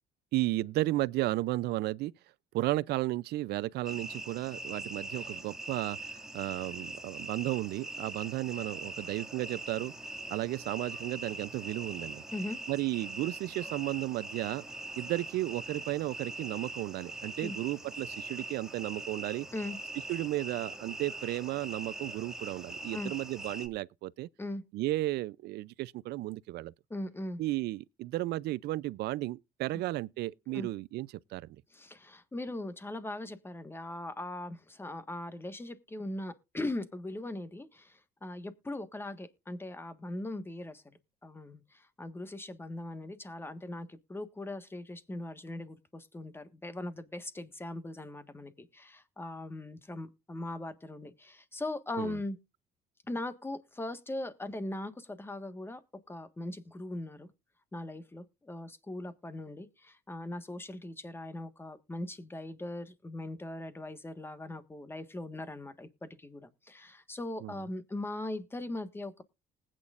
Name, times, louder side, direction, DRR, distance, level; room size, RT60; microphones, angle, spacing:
voice 1, 0.3-2.1 2.5-6.0 6.3-9.9 10.3-12.2 12.7-14.6 15.0-19.5 20.1-24.3 24.7-26.7 27.4-31.5 52.0-52.2 67.4-67.5, right 17 dB, 75° right, 0.5 m, -34 dB
Night time crickets distant dogs and traffic ambience, 3.8-23.7, right 2 dB, 5° right, 2.1 m, -42 dB
voice 2, 26.9-27.4 30.5-30.7 31.7-40.8 41.2-52.4 53.1-55.8 56.1-57.3 57.7-69.2, left 1 dB, 15° left, 1.5 m, -40 dB
20.0 x 9.0 x 2.5 m
cardioid pair, 110°, 17 cm